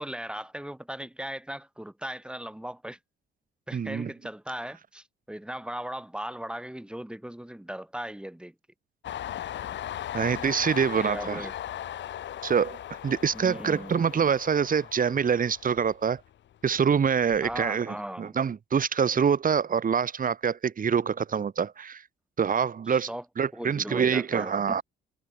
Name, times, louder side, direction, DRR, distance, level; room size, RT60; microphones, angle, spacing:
voice 1, 0.0-3.0 3.7-8.5 11.0-11.5 13.3-14.0 17.4-18.4 22.9-23.2 23.5-24.8, right 1 dB, 5° right, 4.5 m, -38 dB
voice 2, 3.7-4.1 10.1-11.4 12.4-16.2 16.6-22.0 22.4-23.1 23.4-24.8, right 7 dB, 45° right, 2.8 m, -25 dB
Train, 9.0-16.5 16.8-17.7, left 11 dB, 65° left, 1.4 m, -38 dB
cardioid pair, 90°, 20 cm